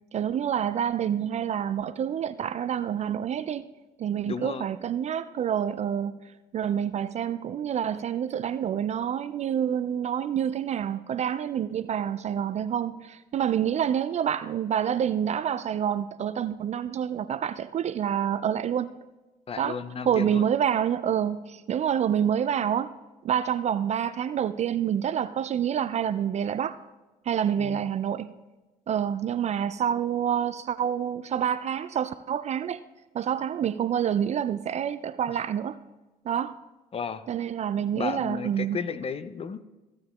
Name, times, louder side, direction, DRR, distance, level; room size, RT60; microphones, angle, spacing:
voice 1, 0.1-3.7 4.0-6.1 6.5-18.9 19.6-19.8 20.0-22.9 23.2-26.8 27.3-28.3 28.9-32.8 33.1-35.8 36.3-36.6 37.3-38.8, right 9 dB, 35° right, 14 dB, 0.4 m, -27 dB
voice 2, 4.3-4.7 19.5-20.5 27.6-27.8 36.9-37.3 37.9-39.6, left 6 dB, 30° left, 12 dB, 0.6 m, -33 dB
15.5 x 8.6 x 2.3 m, 1.1 s
figure-of-eight pair, 50°, 20 cm